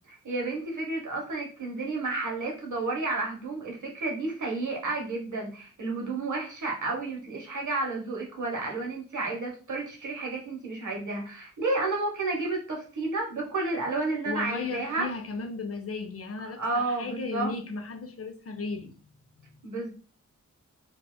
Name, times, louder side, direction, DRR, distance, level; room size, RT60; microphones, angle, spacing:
voice 1, 0.2-15.1 16.6-17.5 19.6-19.9, right 3 dB, 70° right, 0 dB, 0.9 m, -31 dB
voice 2, 14.2-19.5, left 3 dB, 50° left, 6 dB, 0.5 m, -35 dB
4.1 x 2.3 x 2.2 m, 0.37 s
wide cardioid pair, 80°, 31 cm